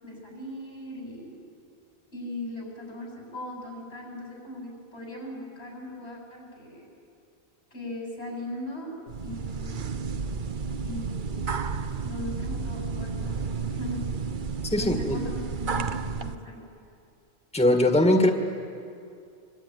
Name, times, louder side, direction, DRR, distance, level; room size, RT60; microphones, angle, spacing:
voice 1, 0.0-1.4 2.1-6.8 7.7-10.0 10.8-11.6 12.0-14.1 14.7-16.6, left 1 dB, 85° left, -1 dB, 7.9 m, -39 dB
sound 1, 9.1-16.4, right 5 dB, 50° right, 0.9 m, -32 dB
voice 2, 14.7-15.2 17.5-18.3, left 1 dB, 5° left, 4 dB, 1.8 m, -20 dB
25.0 x 24.5 x 9.5 m, 2.5 s
omnidirectional pair, 1.1 m